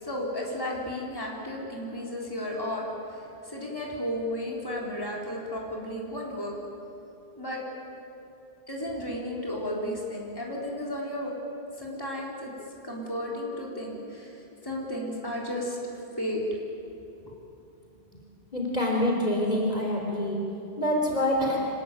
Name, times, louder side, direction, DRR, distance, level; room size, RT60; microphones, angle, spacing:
voice 1, 0.0-2.9 3.4-6.5 7.4-7.6 8.7-11.3 11.8-12.5 12.8-15.8 16.2-16.4, left 1 dB, 20° left, -3 dB, 4.1 m, -33 dB
voice 2, 18.5-20.4 20.8-21.6, left 1 dB, 40° left, -1 dB, 3.8 m, -26 dB
26.0 x 19.5 x 9.3 m, 2.8 s
omnidirectional pair, 1.1 m